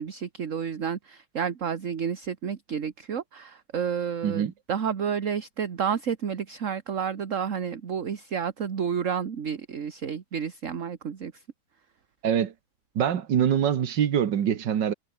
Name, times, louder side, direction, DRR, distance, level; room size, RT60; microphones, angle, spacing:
voice 1, 0.0-11.3, right 7 dB, 50° right, 1.6 m, -30 dB
voice 2, 4.2-4.5 12.2-12.5 13.0-14.9, right 9 dB, 85° right, 2.0 m, -24 dB
omnidirectional pair, 1.9 m